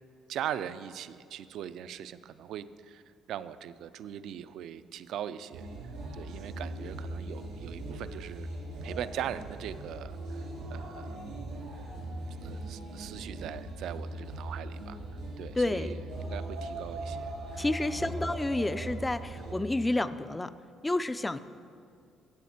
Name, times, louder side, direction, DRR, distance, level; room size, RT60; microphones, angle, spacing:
voice 1, 0.3-3.0 3.3-5.7 6.1-8.5 8.8-11.2 12.4-15.0 15.4-18.3, right 10 dB, 70° right, 14 dB, 0.4 m, -40 dB
sound 1, 5.5-19.5, right 1 dB, 90° right, 3.2 m, -39 dB
voice 2, 15.6-15.9 17.6-20.5 20.8-21.4, left 2 dB, 10° left, 14 dB, 0.3 m, -30 dB
15.5 x 7.2 x 4.3 m, 2.3 s
cardioid pair, 135°, 0 cm